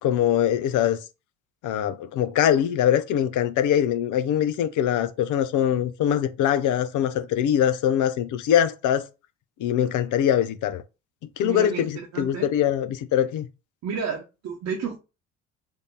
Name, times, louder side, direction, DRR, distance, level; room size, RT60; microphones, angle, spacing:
voice 1, 0.0-1.0 1.6-9.1 9.6-10.8 11.4-13.5, left 10 dB, 50° left, 0.7 m, -23 dB
voice 2, 11.4-12.5 13.8-15.0, right 6 dB, 45° right, 1.0 m, -31 dB
3.5 x 2.7 x 3.8 m
figure-of-eight pair, 55°, 39 cm